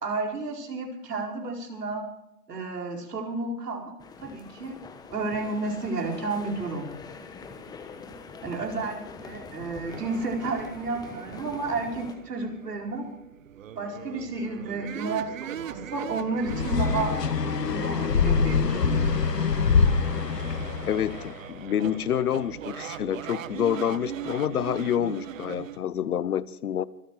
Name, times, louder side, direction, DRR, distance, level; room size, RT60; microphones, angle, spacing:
voice 1, 0.0-2.1 2.5-3.9 4.2-4.7 5.1-6.9 8.4-13.1 13.8-17.2 17.7-19.2, right 3 dB, 80° right, 1 dB, 4.8 m, -31 dB
sound 1, 4.0-12.2, left 4 dB, 10° left, 1.1 m, -44 dB
sound 2, 9.9-25.8, right 9 dB, 55° right, 1.2 m, -40 dB
sound 3, 16.5-21.3, left 5 dB, 85° left, 1.5 m, -24 dB
voice 2, 20.9-26.9, left 9 dB, 70° left, 19 dB, 1.0 m, -28 dB
25.0 x 8.9 x 4.9 m, 0.81 s
hypercardioid pair, 135°, 47 cm